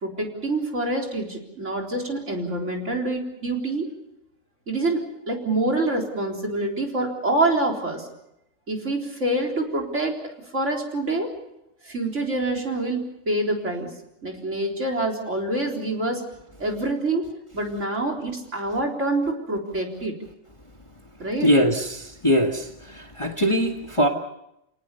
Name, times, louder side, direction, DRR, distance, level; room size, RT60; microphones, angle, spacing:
voice 1, 0.0-3.9 4.7-8.1 8.7-10.2 10.5-11.3 11.8-13.9 14.2-16.2 16.6-17.3 17.5-20.2 21.2-21.5, right 2 dB, 45° right, 1 dB, 4.3 m, -26 dB
voice 2, 21.4-22.6 23.2-24.1, equal, 20° left, 3 dB, 1.8 m, -21 dB
30.0 x 18.5 x 7.0 m, 0.82 s
omnidirectional pair, 1.7 m